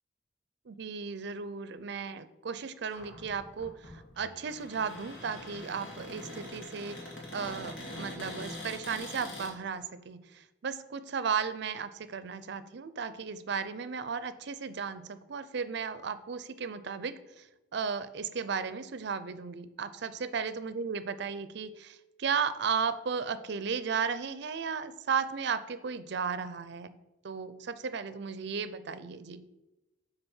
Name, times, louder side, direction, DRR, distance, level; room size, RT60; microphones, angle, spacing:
voice 1, 0.7-7.0 7.3-17.5 17.7-26.9 27.2-29.4, right 6 dB, 65° right, 13 dB, 0.5 m, -35 dB
Cupboard open or close, 2.8-9.5, left 1 dB, 80° left, 2.1 m, -44 dB
7.0 x 3.9 x 5.5 m, 0.99 s
head